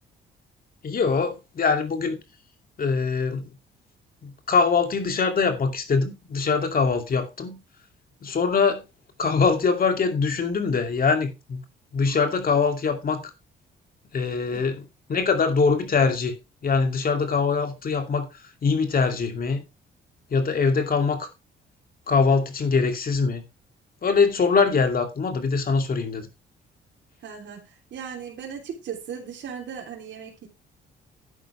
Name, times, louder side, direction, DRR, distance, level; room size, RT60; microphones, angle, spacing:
voice 1, 0.8-2.2 2.8-3.5 4.2-7.6 8.2-8.8 9.2-11.6 11.9-13.2 14.1-14.8 15.1-16.3 16.6-18.3 18.6-19.6 20.3-21.3 22.1-23.4 24.0-26.3, left 5 dB, 45° left, 2.5 m, -23 dB
voice 2, 27.2-30.5, right 7 dB, 65° right, 3.3 m, -37 dB
11.0 x 9.2 x 3.3 m
cardioid pair, 90°, 20 cm